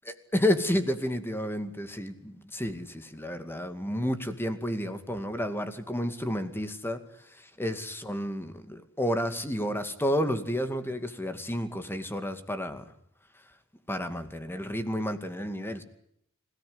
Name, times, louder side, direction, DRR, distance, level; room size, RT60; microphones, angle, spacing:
voice 1, 0.3-7.0 7.6-12.8 13.9-15.8, equal, 10° left, 8 dB, 2.3 m, -31 dB
27.0 x 17.5 x 9.7 m, 0.72 s
head